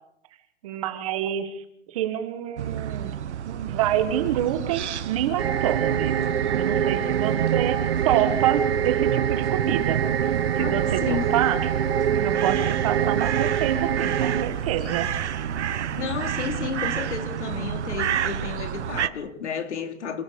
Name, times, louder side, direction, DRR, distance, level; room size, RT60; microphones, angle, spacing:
voice 1, 0.6-1.6 1.9-3.1 3.4-6.1 6.5-7.8 8.0-10.0 10.5-11.6 12.1-15.1, right 11 dB, 30° right, 1.6 m, -27 dB
sound 1, 2.6-19.1, right 9 dB, 75° right, 1.3 m, -30 dB
sound 2, 5.4-14.4, right 9 dB, 60° right, 1.5 m, -25 dB
Engine, 9.7-16.6, left 4 dB, 25° left, 6.1 m, -45 dB
voice 2, 10.6-11.3 16.0-20.2, left 7 dB, 75° left, 3.4 m, -32 dB
27.0 x 16.5 x 7.0 m
hypercardioid pair, 175°, 35 cm